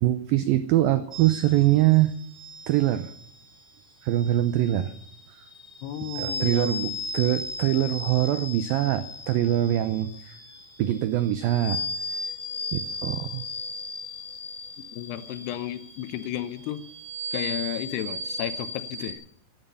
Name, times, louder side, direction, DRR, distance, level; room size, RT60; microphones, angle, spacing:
voice 1, 0.0-2.1 2.7-3.1 4.0-4.9 5.3-5.4 6.2-10.4 10.8-11.8 12.7-13.4, right 13 dB, 85° right, 12 dB, 2.0 m, -23 dB
sound 1, 1.1-19.1, left 2 dB, 10° left, 1.8 m, -37 dB
voice 2, 5.8-6.9 14.9-16.8 17.3-19.2, left 12 dB, 75° left, 13 dB, 2.8 m, -33 dB
16.0 x 11.0 x 6.8 m, 0.68 s
omnidirectional pair, 5.1 m